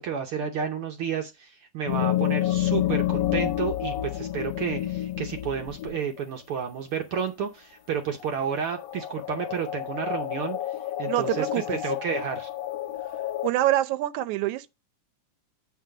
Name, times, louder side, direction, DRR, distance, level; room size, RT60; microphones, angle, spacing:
voice 1, 0.0-10.6 11.0-11.5 11.8-12.5, right 7 dB, 65° right, 1.4 m, -31 dB
sound 1, 1.9-6.2 8.2-8.3 8.7-13.5, left 13 dB, 70° left, 1.7 m, -29 dB
voice 2, 11.1-11.8 13.4-14.7, right 14 dB, 85° right, 2.0 m, -25 dB
8.3 x 4.0 x 6.2 m
omnidirectional pair, 3.4 m